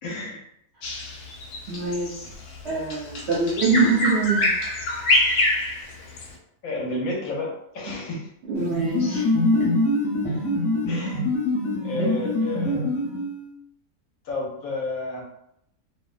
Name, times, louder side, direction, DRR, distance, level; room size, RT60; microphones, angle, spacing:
voice 1, 0.0-0.4 1.9-2.0 6.6-8.3 10.9-11.3 11.8-12.9 14.2-15.2, left 2 dB, 70° left, -1 dB, 1.0 m, -31 dB
Bird vocalization bird call bird song, 0.8-6.3, left 1 dB, 90° left, 1.2 m, -25 dB
voice 2, 1.7-2.3 2.6-4.5 7.9-8.0 8.4-9.7 10.2-10.4 12.0-12.1, right 3 dB, 70° right, -5 dB, 0.6 m, -25 dB
sound 1, 8.6-13.5, left 2 dB, 45° left, 1.0 m, -24 dB
2.6 x 2.1 x 2.4 m, 0.78 s
omnidirectional pair, 1.6 m